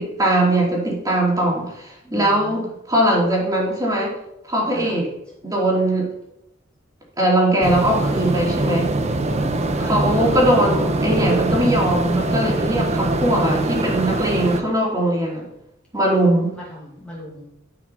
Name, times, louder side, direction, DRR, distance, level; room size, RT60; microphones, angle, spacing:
voice 1, 0.0-4.1 4.5-5.1 5.4-6.1 7.2-8.9 9.8-15.5 15.9-16.6, right 1 dB, 20° right, -3 dB, 2.8 m, -20 dB
voice 2, 2.0-2.7 4.7-5.0 9.3-10.4 16.5-17.5, left 1 dB, 5° left, -5 dB, 2.2 m, -38 dB
sound 1, 7.6-14.6, right 2 dB, 35° right, 0.9 m, -22 dB
11.0 x 5.6 x 5.6 m, 0.81 s
head